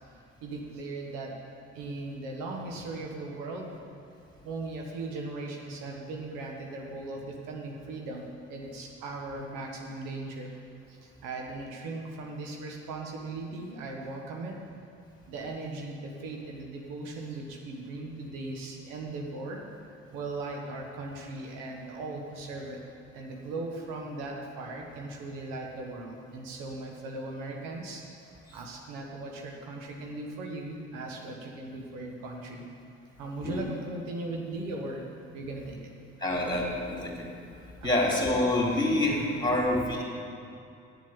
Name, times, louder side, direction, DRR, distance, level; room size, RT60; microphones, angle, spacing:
voice 1, 0.4-1.3 1.7-3.7 4.4-10.5 10.9-14.6 15.3-19.6 20.1-22.8 23.1-28.0 28.5-32.6 33.2-35.0 35.3-35.9 37.8-37.9, right 2 dB, 75° right, 0 dB, 1.3 m, -38 dB
voice 2, 36.2-37.3 37.8-40.0, left 1 dB, 15° left, -2 dB, 3.1 m, -27 dB
7.7 x 7.5 x 8.6 m, 2.5 s
hypercardioid pair, 50°, 33 cm